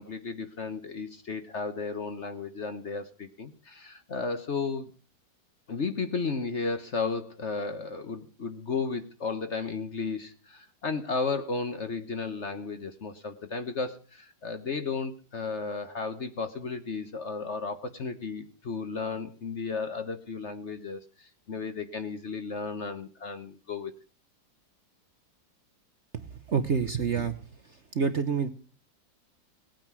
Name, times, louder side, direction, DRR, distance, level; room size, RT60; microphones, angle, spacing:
voice 1, 0.0-4.9 5.7-23.9, left 4 dB, 45° left, 9 dB, 1.2 m, -34 dB
voice 2, 26.1-27.3 27.6-28.5, right 6 dB, 50° right, 10 dB, 1.0 m, -28 dB
18.5 x 9.2 x 6.0 m, 0.40 s
omnidirectional pair, 2.0 m